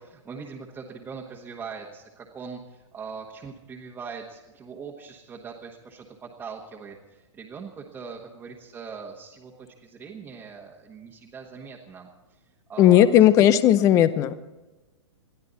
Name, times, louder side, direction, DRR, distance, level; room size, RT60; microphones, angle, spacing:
voice 1, 0.0-12.4 12.7-13.1 13.5-13.6 13.9-14.1, right 5 dB, 10° right, -2 dB, 1.4 m, -41 dB
voice 2, 12.8-14.3, left 11 dB, 20° left, 15 dB, 0.5 m, -16 dB
21.5 x 13.5 x 4.1 m, 1.1 s
hypercardioid pair, 150°, 15 cm